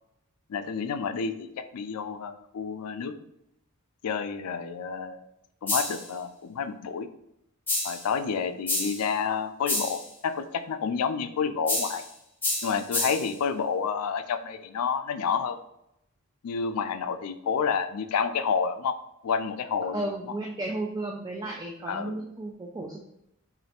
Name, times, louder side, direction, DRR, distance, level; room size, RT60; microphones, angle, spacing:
voice 1, 0.5-3.1 4.0-5.2 5.6-7.1 7.8-12.0 12.6-15.6 16.4-19.0 19.2-20.0 21.9-22.2, left 6 dB, 90° left, 10 dB, 0.4 m, -29 dB
sound 1, 5.7-6.1 7.7-8.1 8.7-9.1 9.7-10.1 11.7-12.1 12.4-13.3, left 2 dB, 10° left, 0.9 m, -29 dB
voice 2, 19.9-23.1, right 2 dB, 15° right, 0 dB, 0.3 m, -34 dB
3.2 x 2.5 x 4.2 m, 0.82 s
head